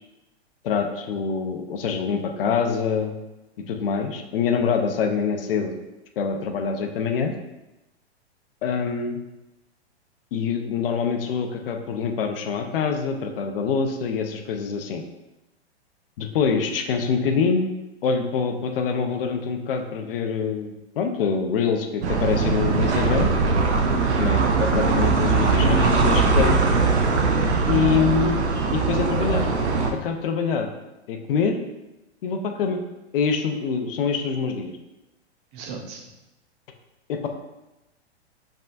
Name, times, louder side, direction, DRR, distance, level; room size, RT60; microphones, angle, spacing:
voice 1, 0.6-3.2 3.7-5.7 6.2-7.3 8.6-9.2 10.3-15.0 16.2-17.7 18.0-23.3 24.2-26.6 27.7-28.4 28.7-29.5 29.9-30.7 31.1-31.6 32.2-32.8 33.1-34.7 37.1-37.3, left 6 dB, 55° left, 5 dB, 0.6 m, -25 dB
sound 1, 22.0-29.9, right 4 dB, 80° right, 0.7 m, -21 dB
voice 2, 35.5-36.1, right 5 dB, 35° right, 2 dB, 0.8 m, -37 dB
5.4 x 3.7 x 2.5 m, 0.97 s
hypercardioid pair, 115°, 33 cm